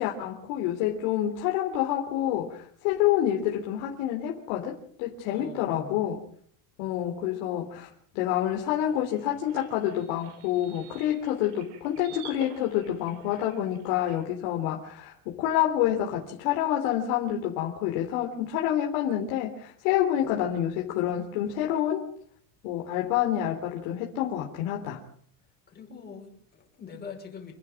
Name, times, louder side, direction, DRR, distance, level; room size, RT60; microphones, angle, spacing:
voice 1, 0.0-6.2 6.8-7.9 8.1-22.0 22.6-25.0, left 11 dB, 85° left, 3.7 m, -28 dB
voice 2, 5.2-6.1 25.7-27.5, left 5 dB, 25° left, 5.9 m, -43 dB
sound 1, 8.8-14.3, right 8 dB, 80° right, 5.8 m, -49 dB
27.5 x 11.0 x 9.1 m
cardioid pair, 160°, 40 cm